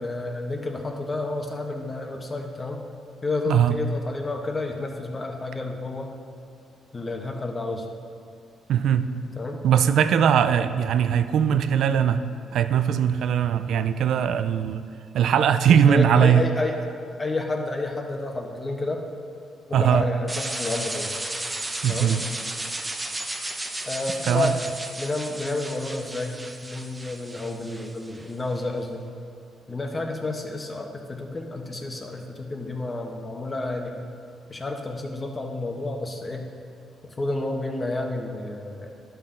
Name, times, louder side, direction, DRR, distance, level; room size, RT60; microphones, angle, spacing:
voice 1, 0.0-2.8 3.2-6.1 6.9-7.9 9.4-9.6 15.7-19.0 19.7-21.1 21.9-22.2 23.8-24.6 25.0-29.0 29.7-34.0 34.5-36.5 37.2-38.9, left 2 dB, 25° left, 2 dB, 1.0 m, -30 dB
voice 2, 3.5-3.8 8.7-9.0 9.6-12.2 12.5-14.8 15.1-16.5 19.7-20.0 21.8-22.2 24.3-24.5, right 8 dB, 75° right, 11 dB, 0.4 m, -20 dB
sound 1, 20.3-28.3, right 1 dB, 15° right, 0.7 m, -34 dB
11.0 x 6.0 x 3.8 m, 2.3 s
cardioid pair, 90°, 0 cm